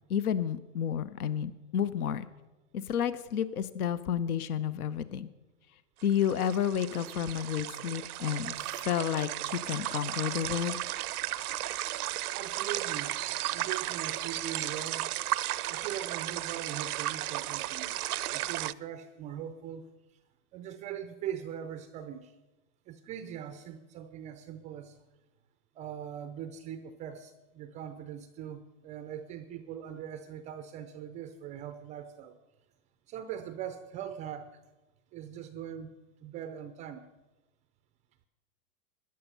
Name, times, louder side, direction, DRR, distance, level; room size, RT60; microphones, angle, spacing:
voice 1, 0.1-2.3 2.7-5.3 6.0-10.8, left 9 dB, 80° left, 15 dB, 0.8 m, -31 dB
sound 1, 6.0-18.7, right 15 dB, 80° right, 0.5 m, -35 dB
voice 2, 12.3-13.2 13.5-15.1 15.7-18.0 18.3-19.9 20.5-22.3 22.9-25.0 25.7-32.4 33.1-34.6 35.1-37.1, right 9 dB, 20° right, 10 dB, 0.3 m, -41 dB
13.5 x 10.5 x 5.5 m, 1.1 s
hypercardioid pair, 115°, 44 cm